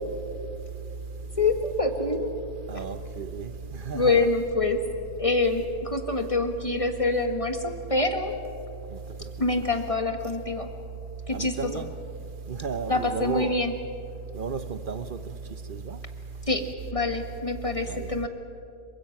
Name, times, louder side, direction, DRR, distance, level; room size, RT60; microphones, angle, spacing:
voice 1, 1.4-2.3 3.9-4.8 5.2-8.4 9.4-10.7 11.3-11.8 12.9-13.7 16.5-16.6 16.9-18.3, left 3 dB, 20° left, 1.4 m, -26 dB
voice 2, 2.7-4.2 8.9-9.0 11.3-11.9 12.5-13.5 14.3-15.4 15.7-16.0 17.9-18.1, right 5 dB, 45° right, 0.7 m, -33 dB
27.0 x 23.5 x 5.9 m
omnidirectional pair, 1.7 m